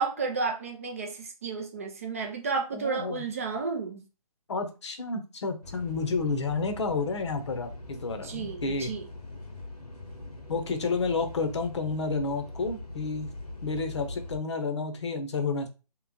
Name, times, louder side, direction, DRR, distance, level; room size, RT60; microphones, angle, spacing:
voice 1, 0.0-4.0 8.2-9.1, right 4 dB, 20° right, 3 dB, 0.4 m, -32 dB
voice 2, 2.7-3.2 4.5-8.9 10.5-13.3 13.6-15.7, left 4 dB, 45° left, 7 dB, 0.8 m, -30 dB
sound 1, 5.6-14.4, left 2 dB, 80° left, 1.1 m, -42 dB
3.3 x 3.1 x 3.7 m, 0.32 s
figure-of-eight pair, 140°, 20 cm